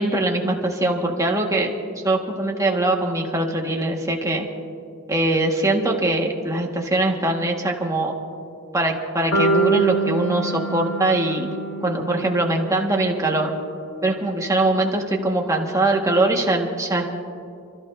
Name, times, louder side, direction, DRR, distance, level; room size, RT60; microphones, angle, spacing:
voice 1, 0.0-1.7 2.0-4.5 5.1-8.1 8.7-11.5 11.8-13.5 14.0-17.2, right 2 dB, 15° right, 0 dB, 1.6 m, -22 dB
sound 1, 9.3-13.4, right 3 dB, 70° left, 1.7 m, -25 dB
30.0 x 14.5 x 2.7 m, 2.6 s
head